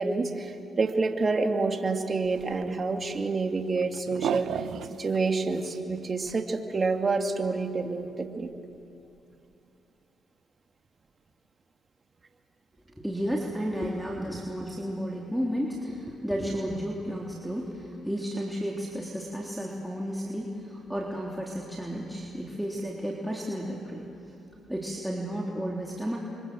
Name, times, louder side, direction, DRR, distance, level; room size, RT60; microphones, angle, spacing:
voice 1, 0.0-4.5 4.9-8.5, right 3 dB, 40° right, 4 dB, 2.6 m, -28 dB
sound 1, 2.3-3.2 3.6-5.2 5.5-6.4 6.8-6.9 7.1-7.2 8.5-8.6 8.8-8.9 9.2-9.3, right 9 dB, 75° right, 0.9 m, -35 dB
voice 2, 12.9-24.0 24.7-26.2, equal, 5° right, -3 dB, 3.7 m, -32 dB
29.5 x 25.0 x 7.9 m, 2.8 s
supercardioid pair, 65°, 0 cm